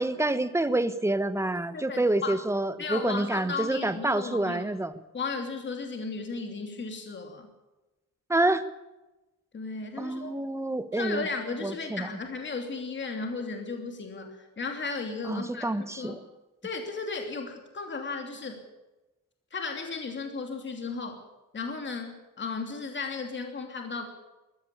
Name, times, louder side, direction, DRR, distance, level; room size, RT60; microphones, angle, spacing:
voice 1, 0.0-4.9 8.3-8.6 10.0-11.3 11.6-12.1 15.2-16.2, right 2 dB, 10° right, 11 dB, 1.2 m, -27 dB
voice 2, 1.7-2.4 2.8-4.6 5.1-7.5 9.5-10.3 10.9-15.7 16.0-16.2 16.6-18.6 19.5-21.2 21.5-24.0, left 4 dB, 35° left, 4 dB, 2.9 m, -35 dB
20.5 x 15.5 x 8.6 m, 1.1 s
cardioid pair, 145°, 34 cm